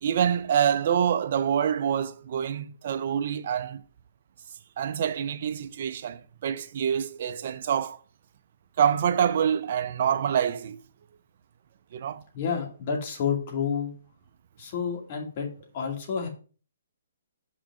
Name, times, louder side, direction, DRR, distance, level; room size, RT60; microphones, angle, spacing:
voice 1, 0.0-3.8 4.8-8.0 8.8-10.8 11.9-12.2, right 8 dB, 50° right, 0.7 m, -26 dB
voice 2, 12.3-13.9 14.6-16.3, left 6 dB, 45° left, 2.3 m, -30 dB
6.1 x 4.9 x 6.1 m
hypercardioid pair, 140°, 0 cm